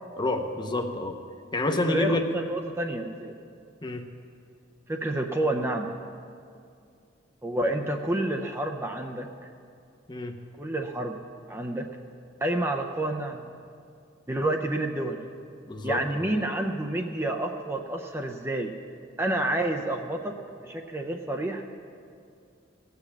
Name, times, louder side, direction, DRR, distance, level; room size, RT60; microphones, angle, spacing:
voice 1, 0.2-1.2 1.5-2.2 3.8-4.1 10.1-10.4 15.7-16.3, left 2 dB, 25° left, 5 dB, 0.8 m, -28 dB
voice 2, 1.7-3.4 4.9-5.9 7.4-9.3 10.6-11.2 11.5-11.9 12.4-13.4 14.3-15.2 15.8-18.7 19.2-21.6, right 1 dB, 15° right, 3 dB, 0.5 m, -29 dB
16.5 x 6.8 x 7.2 m, 2.4 s
head